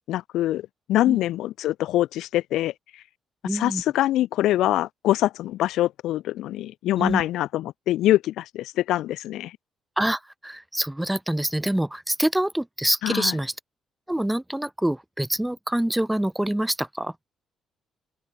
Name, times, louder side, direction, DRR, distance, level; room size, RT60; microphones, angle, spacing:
voice 1, 0.1-2.7 3.5-9.5 13.0-13.3, left 14 dB, 85° left, 0.4 m, -24 dB
voice 2, 3.4-3.8 7.0-7.2 10.0-13.5 14.1-17.1, right 1 dB, 5° right, 1.0 m, -26 dB
open air
cardioid pair, 115°, 0 cm